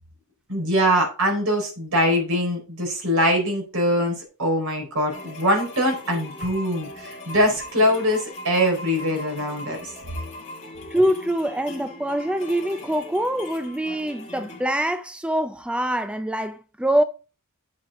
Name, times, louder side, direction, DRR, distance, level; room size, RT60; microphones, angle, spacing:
voice 1, 0.5-9.9, equal, 70° right, 4.6 m, -23 dB
sound 1, 5.1-14.7, left 1 dB, 30° left, 2.4 m, -40 dB
voice 2, 10.9-17.0, right 1 dB, 5° right, 0.4 m, -24 dB
8.9 x 7.5 x 3.7 m
head